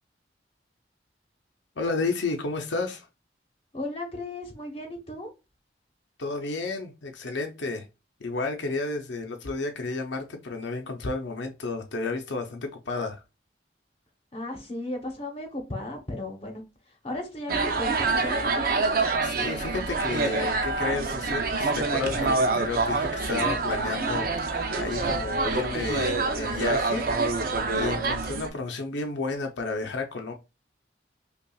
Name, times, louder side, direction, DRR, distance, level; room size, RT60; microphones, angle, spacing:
voice 1, 1.8-3.1 6.2-7.8 8.2-13.2 19.2-27.1 27.5-30.3, left 3 dB, 80° left, 0.6 m, -32 dB
voice 2, 3.7-5.3 14.3-16.6 17.0-18.9, left 1 dB, 30° left, 0.9 m, -35 dB
sound 1, 17.5-28.5, right 3 dB, 55° right, 0.5 m, -26 dB
5.3 x 2.3 x 2.3 m
head